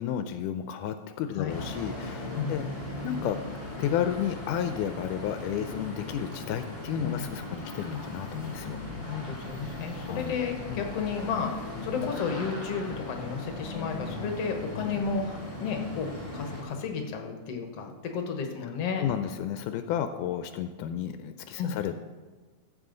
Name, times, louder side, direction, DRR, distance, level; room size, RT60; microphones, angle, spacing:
voice 1, 0.0-2.7 3.0-3.4 3.8-8.8 9.6-9.8 10.1-10.3 10.7-10.8 19.0-22.0, left 9 dB, 85° left, 9 dB, 2.0 m, -32 dB
sound 1, 1.5-16.6, left 1 dB, 20° left, 2.5 m, -38 dB
voice 2, 9.1-11.5 11.8-16.1 16.3-19.0 21.6-21.7, left 6 dB, 60° left, 3 dB, 1.9 m, -32 dB
14.5 x 7.8 x 3.8 m, 1.3 s
omnidirectional pair, 3.6 m